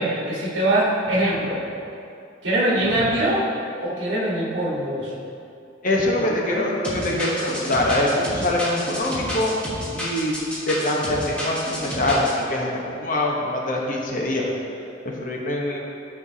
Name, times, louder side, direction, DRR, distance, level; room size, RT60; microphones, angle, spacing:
voice 1, 0.0-1.6 2.4-3.5 3.8-5.1 6.5-6.7, right 1 dB, 70° right, -5 dB, 1.6 m, -22 dB
voice 2, 5.8-9.5 9.9-10.3 10.6-14.5 15.2-15.8, left 1 dB, 45° left, -2 dB, 1.0 m, -24 dB
sound 1, 6.8-12.3, equal, 5° left, 1.3 m, -30 dB
12.5 x 4.5 x 2.8 m, 2.6 s
head